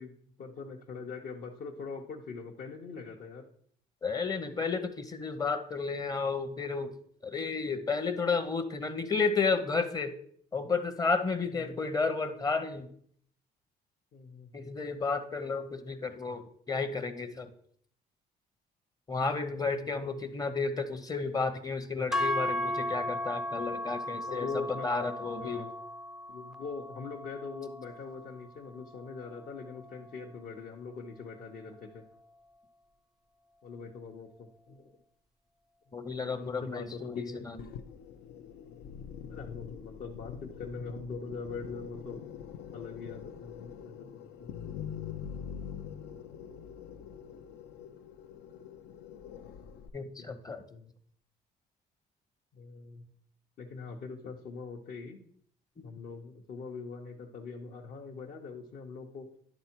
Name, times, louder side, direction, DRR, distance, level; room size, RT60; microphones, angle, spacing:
voice 1, 0.0-3.5 11.5-11.8 14.1-14.5 19.7-20.3 24.3-25.1 25.4-25.7 26.3-32.0 33.6-35.0 35.9-36.0 36.4-37.5 39.2-42.3 42.7-44.7 50.0-50.9 52.5-53.1 53.6-55.2 55.8-59.3, left 4 dB, 55° left, -1 dB, 0.9 m, -42 dB
voice 2, 4.0-6.9 7.2-10.1 10.5-12.9 14.5-17.5 19.1-24.5 24.8-25.6 35.9-37.7 49.9-50.6, left 4 dB, 20° left, 9 dB, 0.8 m, -32 dB
sound 1, 22.1-30.4, left 1 dB, ahead, 0.4 m, -37 dB
sound 2, 37.6-49.9, left 8 dB, 75° left, 0.6 m, -44 dB
10.5 x 3.6 x 4.4 m, 0.62 s
cardioid pair, 110°, 17 cm